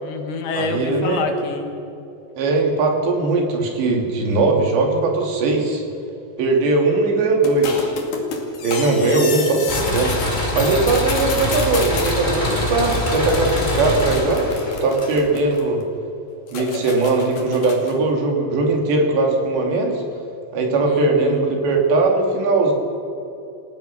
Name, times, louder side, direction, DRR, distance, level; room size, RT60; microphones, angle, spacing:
voice 1, 0.0-1.7 8.8-9.3 20.9-21.5, left 4 dB, 70° left, 5 dB, 3.6 m, -27 dB
voice 2, 0.5-1.2 2.3-5.8 6.4-7.9 8.6-10.1 10.5-14.5 14.8-15.8 16.5-20.0 20.5-22.7, right 3 dB, 80° right, 1 dB, 4.8 m, -19 dB
sound 1, 7.4-10.3 10.6-12.2 12.8-15.8 16.5-18.0, left 4 dB, 55° left, 3.6 m, -29 dB
sound 2, 9.7-15.5, left 1 dB, 15° left, 2.6 m, -24 dB
28.5 x 16.0 x 6.0 m, 2.8 s
omnidirectional pair, 4.9 m